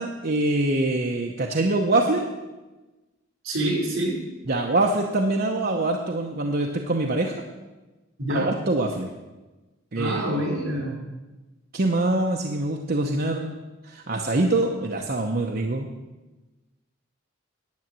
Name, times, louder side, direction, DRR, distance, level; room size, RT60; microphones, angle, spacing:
voice 1, 0.0-2.3 4.5-7.4 8.3-9.1 9.9-10.6 11.7-13.5 13.8-15.9, right 2 dB, 50° right, 1 dB, 0.9 m, -24 dB
voice 2, 3.4-4.2 8.2-8.5 10.0-11.0, right 1 dB, 75° right, -1 dB, 4.6 m, -26 dB
10.5 x 8.4 x 7.6 m, 1.1 s
head